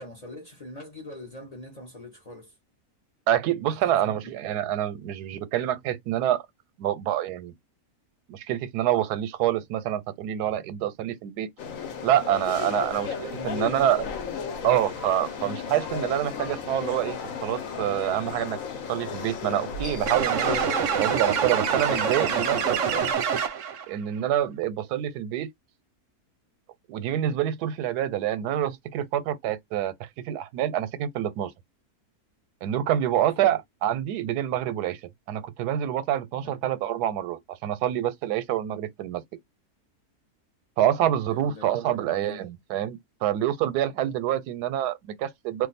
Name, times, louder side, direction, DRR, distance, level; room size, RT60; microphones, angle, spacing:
voice 1, 0.0-2.5 3.8-4.1 12.7-13.8 33.1-33.6 36.4-36.6 41.3-42.4, left 2 dB, 35° left, 0.7 m, -43 dB
voice 2, 3.3-6.4 6.8-7.5 8.3-11.5 12.0-14.0 14.6-18.6 18.9-20.6 21.0-23.1 23.9-25.5 26.9-31.5 32.6-35.0 35.3-39.2 40.8-45.7, right 11 dB, 90° right, 1.1 m, -27 dB
sound 1, 11.6-23.1, left 6 dB, 65° left, 1.1 m, -34 dB
sound 2, 20.1-23.8, right 7 dB, 65° right, 0.8 m, -26 dB
2.5 x 2.3 x 4.0 m
omnidirectional pair, 1.6 m